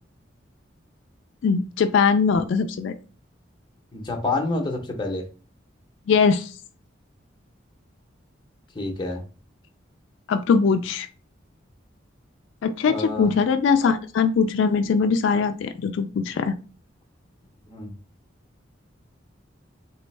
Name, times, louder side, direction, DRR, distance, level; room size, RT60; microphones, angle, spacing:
voice 1, 1.4-2.9 6.1-6.5 10.3-11.1 12.6-16.5, left 5 dB, 70° left, 8 dB, 0.3 m, -21 dB
voice 2, 3.9-5.2 8.7-9.2 12.9-13.3 17.7-17.9, left 2 dB, 25° left, 1 dB, 0.7 m, -28 dB
3.4 x 3.1 x 3.2 m, 0.36 s
head